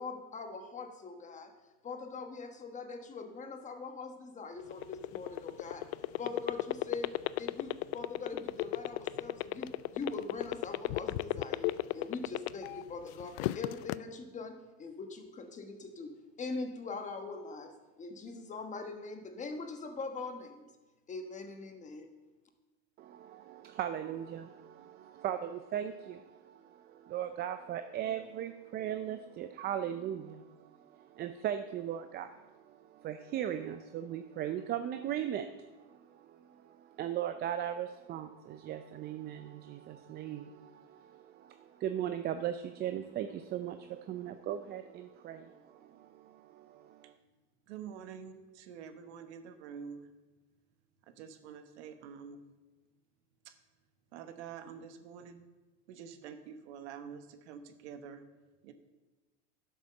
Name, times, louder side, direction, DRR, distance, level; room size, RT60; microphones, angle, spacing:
voice 1, 0.0-1.5 1.8-5.9 6.2-20.7 21.1-22.1, left 3 dB, 20° left, 6 dB, 1.2 m, -42 dB
sound 1, 4.6-12.8 13.2-14.0, left 19 dB, 65° left, 0.5 m, -32 dB
voice 2, 23.0-47.1, right 10 dB, 30° right, 9 dB, 0.4 m, -38 dB
voice 3, 47.7-50.1 51.0-52.4 53.4-53.5 54.1-55.4 55.9-58.2 58.6-58.7, right 7 dB, 80° right, 8 dB, 1.3 m, -47 dB
11.0 x 6.8 x 6.5 m, 1.2 s
supercardioid pair, 130°, 33 cm